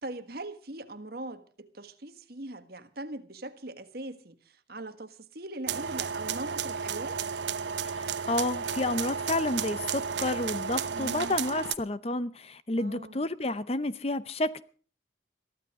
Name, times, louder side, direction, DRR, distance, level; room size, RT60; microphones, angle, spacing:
voice 1, 0.0-7.2 10.9-11.4 12.8-13.2, right 1 dB, 55° right, 1.5 m, -41 dB
sound 1, 5.7-11.7, right 6 dB, 70° right, 0.9 m, -33 dB
voice 2, 7.9-14.6, left 2 dB, 30° left, 0.7 m, -30 dB
22.5 x 14.5 x 3.7 m
head